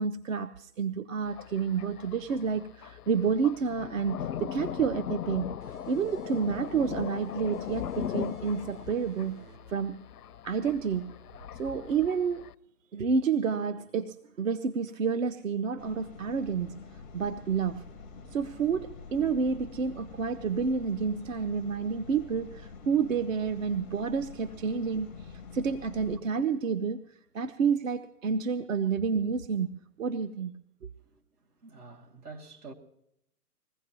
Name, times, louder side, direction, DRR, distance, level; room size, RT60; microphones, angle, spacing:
voice 1, 0.0-5.5 5.9-9.4 9.7-10.0 10.4-11.1 11.5-12.5 12.9-16.8 17.1-17.9 18.3-27.0 27.3-30.5, right 6 dB, 60° right, 0.8 m, -29 dB
Thunder, 1.3-12.5, left 9 dB, 80° left, 0.6 m, -39 dB
sound 1, 5.6-10.9, right 5 dB, 40° right, 1.9 m, -54 dB
sound 2, 15.8-26.2, left 5 dB, 10° left, 0.5 m, -47 dB
voice 2, 31.0-32.7, right 3 dB, 80° right, 2.7 m, -48 dB
21.5 x 15.5 x 3.0 m
figure-of-eight pair, 135°, 45 cm